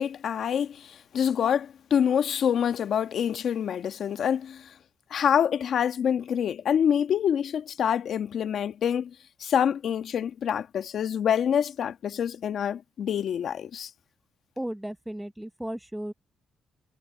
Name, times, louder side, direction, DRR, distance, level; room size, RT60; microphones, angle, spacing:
voice 1, 0.0-4.7 5.1-9.1 9.4-13.9, left 8 dB, 65° left, 1.5 m, -26 dB
voice 2, 14.6-16.1, right 1 dB, 5° right, 0.9 m, -35 dB
cardioid pair, 90°, 0 cm